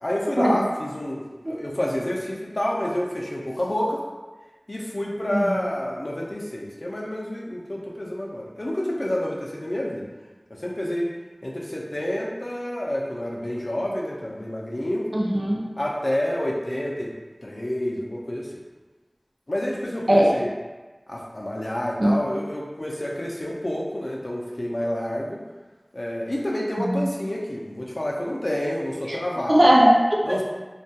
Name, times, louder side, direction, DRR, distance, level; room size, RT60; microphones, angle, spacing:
voice 1, 0.0-4.0 4.7-10.1 10.5-11.1 11.4-15.1 15.8-17.1 17.4-18.6 19.5-20.5 21.1-25.5 25.9-29.7 30.2-30.4, left 1 dB, 60° left, -3 dB, 0.4 m, -28 dB
voice 2, 15.1-15.6 20.1-20.4 22.0-22.2 26.9-27.0 29.5-30.4, equal, 50° right, -2 dB, 0.4 m, -18 dB
2.3 x 2.2 x 2.7 m, 1.3 s
wide cardioid pair, 40°, 0 cm